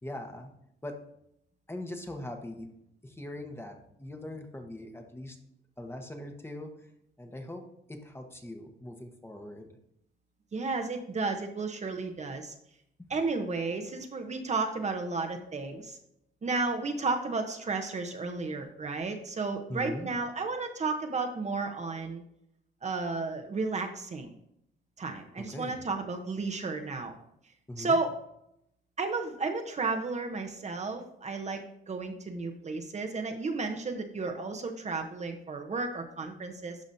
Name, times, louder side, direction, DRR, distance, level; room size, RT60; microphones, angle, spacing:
voice 1, 0.0-0.5 0.8-1.0 1.7-2.7 3.0-5.4 5.8-6.9 7.2-7.6 7.9-9.7 13.0-13.2 19.7-20.1 25.4-25.8 27.7-28.0, left 1 dB, 10° left, 4 dB, 1.1 m, -41 dB
voice 2, 10.5-12.5 13.1-16.0 16.4-22.2 22.8-24.3 25.0-27.1 27.8-28.2 29.0-36.8, right 3 dB, 35° right, 4 dB, 0.9 m, -33 dB
11.5 x 4.9 x 2.7 m, 0.75 s
cardioid pair, 90°, 20 cm